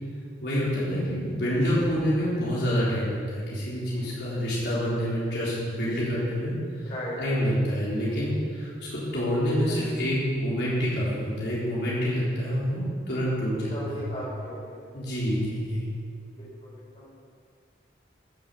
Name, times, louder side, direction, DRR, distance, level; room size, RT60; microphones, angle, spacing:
voice 1, 0.4-6.5 6.8-6.9 7.2-14.0 14.9-15.8, equal, 65° left, -8 dB, 3.9 m, -27 dB
voice 2, 1.3-1.6 2.2-2.4 3.9-4.1 6.8-7.2 9.4-9.9 11.9-12.0 13.7-14.8 16.4-17.1, equal, 35° left, -6 dB, 4.2 m, -38 dB
14.5 x 7.8 x 6.9 m, 2.2 s
head